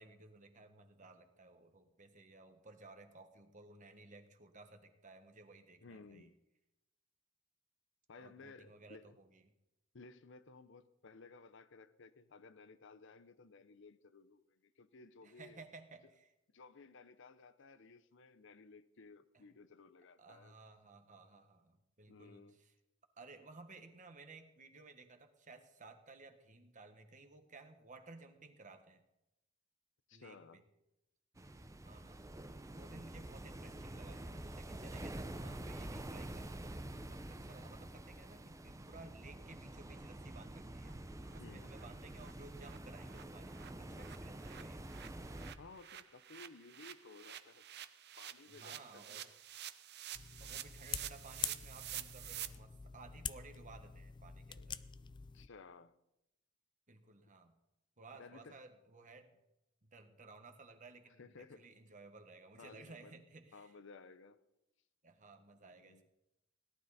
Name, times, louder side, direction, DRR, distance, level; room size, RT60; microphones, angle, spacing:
voice 1, 0.0-6.3 8.2-9.4 15.2-16.3 19.3-19.4 20.2-22.7 23.2-29.0 30.1-30.6 31.8-44.8 48.5-49.2 50.4-54.8 56.9-57.6 58.0-59.3 59.8-63.7 65.0-66.1, right 3 dB, 40° right, 6 dB, 1.4 m, -57 dB
voice 2, 5.8-6.4 8.1-9.2 9.9-15.6 16.5-20.6 22.1-22.6 30.1-30.6 41.4-41.7 45.6-47.9 48.2-49.3 54.5-54.7 55.3-55.9 58.2-58.6 61.2-61.7 62.6-63.1 63.5-64.4 65.6-66.1, left 4 dB, 65° left, 13 dB, 0.7 m, -57 dB
sound 1, 31.4-45.5, right 1 dB, 15° right, 0.7 m, -47 dB
sound 2, 39.5-39.6 39.9-40.0 40.4-40.5 40.8-40.9 41.3-41.4 41.7-41.8 42.2-42.3 42.6-52.5, right 12 dB, 55° right, 0.7 m, -49 dB
sound 3, 50.1-55.5, left 7 dB, 25° left, 0.4 m, -46 dB
17.5 x 12.0 x 4.1 m, 0.89 s
head